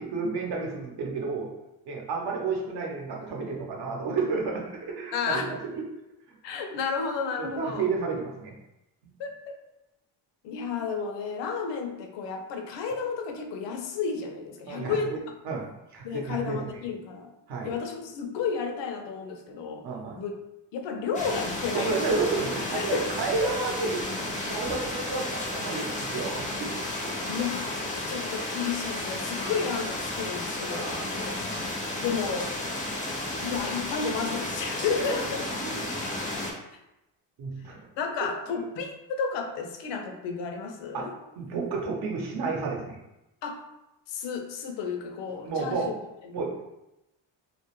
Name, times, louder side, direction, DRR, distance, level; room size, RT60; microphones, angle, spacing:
voice 1, 0.0-1.5 1.8-5.8 7.4-8.5 14.7-15.2 15.4-16.7 17.5-17.7 19.8-20.2 21.7-26.7 30.7-31.1 34.9-35.2 35.6-36.1 37.4-37.8 38.5-38.6 40.9-43.0 45.4-45.9 46.3-46.5, right 4 dB, 60° right, -1 dB, 0.7 m, -31 dB
voice 2, 5.1-5.5 6.4-7.9 9.2-9.6 10.4-15.1 16.0-17.3 17.6-19.8 20.1-20.3 20.7-21.9 22.5-23.0 27.2-31.3 32.0-32.5 33.4-35.4 36.7-36.8 38.0-41.1 43.4-43.6 44.1-45.9 46.2-46.4, left 5 dB, 70° left, 4 dB, 0.6 m, -32 dB
sound 1, 21.1-36.5, left 2 dB, 20° left, 0.4 m, -33 dB
2.3 x 2.0 x 2.9 m, 0.93 s
cardioid pair, 100°, 44 cm